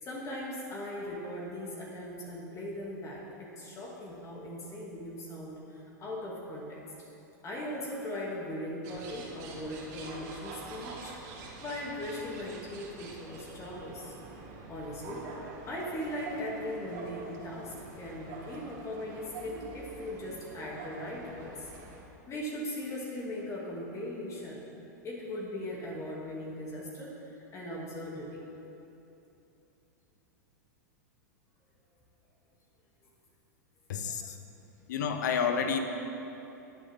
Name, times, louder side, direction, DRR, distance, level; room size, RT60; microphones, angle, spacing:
voice 1, 0.0-6.8 7.4-11.1 11.6-14.1 14.7-15.2 15.6-21.7 22.3-24.7 25.0-28.4, left 1 dB, 30° left, -4 dB, 2.6 m, -39 dB
sound 1, 8.8-22.0, right 3 dB, 55° right, 2.8 m, -46 dB
voice 2, 33.9-34.4 34.9-35.8, left 6 dB, 70° left, 7 dB, 1.2 m, -29 dB
21.0 x 7.6 x 3.7 m, 2.9 s
hypercardioid pair, 105°, 10 cm